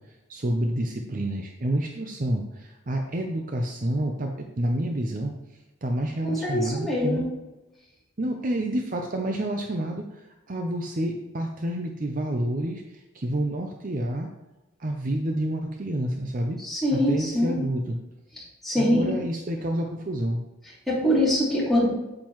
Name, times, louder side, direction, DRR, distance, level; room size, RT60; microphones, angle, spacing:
voice 1, 0.3-5.4 5.8-7.3 8.2-14.3 14.8-16.6 16.9-18.0 18.8-20.4, right 1 dB, 40° right, 3 dB, 0.6 m, -29 dB
voice 2, 6.2-7.2 16.6-17.6 18.4-19.1 20.9-21.9, left 1 dB, ahead, -8 dB, 2.8 m, -24 dB
8.7 x 7.6 x 3.1 m, 1.0 s
head